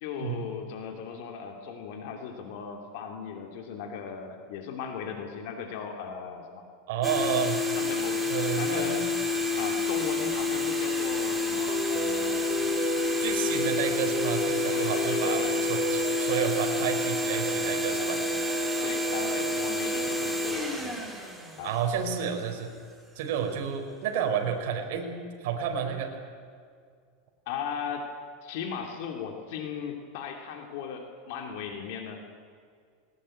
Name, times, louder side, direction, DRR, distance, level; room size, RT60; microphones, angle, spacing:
voice 1, 0.0-6.7 7.8-9.0 9.6-12.8 14.7-15.6 18.8-21.0 21.6-21.7 27.5-28.1 28.4-32.3, left 7 dB, 60° left, 4 dB, 2.8 m, -37 dB
voice 2, 6.9-7.6 8.3-9.0 13.2-18.2 21.6-22.7 23.1-25.1 25.4-26.1, right 7 dB, 65° right, 3 dB, 4.4 m, -30 dB
sound 1, 7.0-22.2, left 3 dB, ahead, 2.8 m, -29 dB
sound 2, 11.4-21.7, right 4 dB, 30° right, 2.7 m, -35 dB
21.0 x 19.5 x 9.0 m, 2.1 s
supercardioid pair, 155°, 0 cm